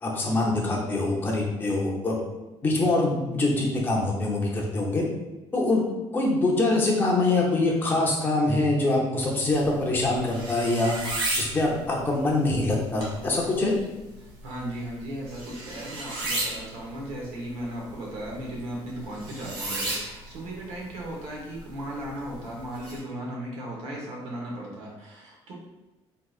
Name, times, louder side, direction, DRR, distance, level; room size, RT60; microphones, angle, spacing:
voice 1, 0.0-2.2 2.6-5.0 5.5-5.9 6.1-11.0 11.4-13.7, left 2 dB, 20° left, -2 dB, 0.6 m, -24 dB
sound 1, 9.5-23.0, right 2 dB, 60° right, 1.2 m, -36 dB
voice 2, 14.2-25.5, right 1 dB, 80° right, -3 dB, 1.1 m, -36 dB
3.7 x 2.7 x 2.4 m, 1.1 s
cardioid pair, 175°, 10 cm